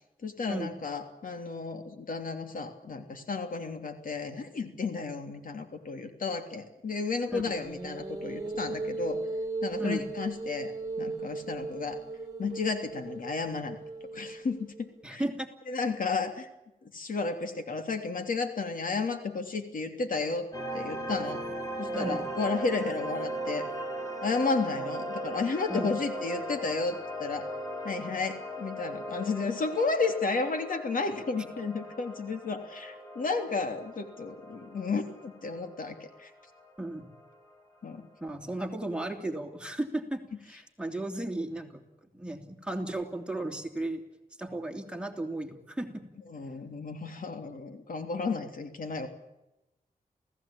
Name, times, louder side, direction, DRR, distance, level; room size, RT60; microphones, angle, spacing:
voice 1, 0.2-9.2 9.6-12.0 12.4-13.8 14.1-15.2 15.7-16.5 16.9-20.5 20.7-21.4 21.8-23.7 24.2-27.5 27.8-36.3 37.8-38.0 46.3-49.1, left 4 dB, 65° left, 6 dB, 3.1 m, -32 dB
sound 1, 7.5-14.8, right 3 dB, 20° right, 2.8 m, -37 dB
voice 2, 15.0-15.5 21.9-22.3 25.7-25.9 36.8-37.1 38.2-41.8 42.1-44.0 44.4-46.0, right 1 dB, 5° right, 2 dB, 3.2 m, -35 dB
sound 2, 20.5-37.5, right 1 dB, 25° left, 6.0 m, -38 dB
28.5 x 17.0 x 8.8 m, 0.94 s
wide cardioid pair, 100°, 15 cm